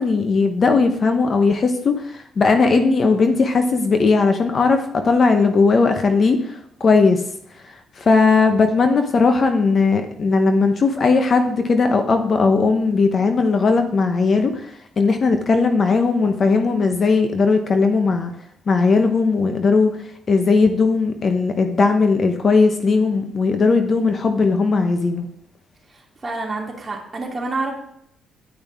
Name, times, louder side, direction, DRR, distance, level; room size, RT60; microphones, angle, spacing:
voice 1, 0.0-7.2 8.0-18.3 18.7-20.0 20.3-25.3, left 4 dB, 45° left, 6 dB, 0.9 m, -18 dB
voice 2, 25.9-27.7, right 3 dB, 25° right, -2 dB, 2.8 m, -28 dB
11.0 x 5.5 x 3.5 m, 0.74 s
cardioid pair, 90°, 0 cm